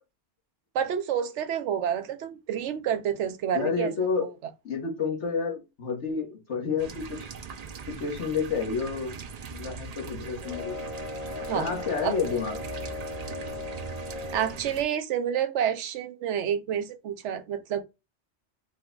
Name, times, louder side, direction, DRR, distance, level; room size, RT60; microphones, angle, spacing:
voice 1, 0.7-3.9 4.2-4.3 11.5-11.7 12.0-12.1 14.3-17.8, right 9 dB, 90° right, 1.0 m, -29 dB
voice 2, 3.5-4.2 4.6-7.3 7.9-9.2 9.5-10.8 11.5-12.5, left 5 dB, 85° left, 1.6 m, -30 dB
sound 1, 6.8-14.8, right 6 dB, 55° right, 0.5 m, -41 dB
sound 2, 10.4-14.7, left 3 dB, 60° left, 1.9 m, -37 dB
4.5 x 2.3 x 3.7 m
omnidirectional pair, 1.2 m